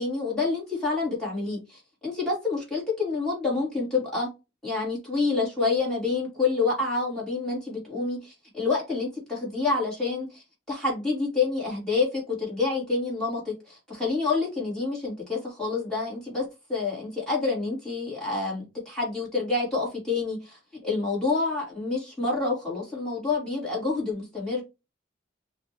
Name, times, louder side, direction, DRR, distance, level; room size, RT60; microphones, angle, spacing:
voice 1, 0.0-4.3 4.6-24.6, left 3 dB, 5° left, 2.9 m, -28 dB
5.6 x 2.8 x 3.0 m
head